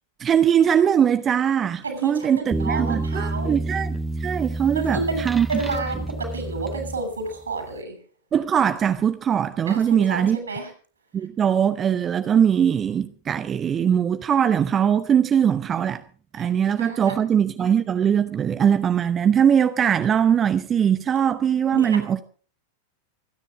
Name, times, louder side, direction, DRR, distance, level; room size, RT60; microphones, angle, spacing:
voice 1, 0.2-5.5 8.3-10.4 11.1-16.0 16.3-22.2, right 8 dB, 25° right, 0.8 m, -21 dB
voice 2, 1.8-3.5 4.7-6.0 6.3-8.0 9.7-10.7 16.4-16.5 16.8-17.2 21.7-22.0, right 3 dB, 75° right, 6.8 m, -30 dB
sound 1, 2.5-7.4, right 2 dB, 5° right, 1.5 m, -29 dB
26.0 x 10.5 x 4.9 m
figure-of-eight pair, 90°, 0 cm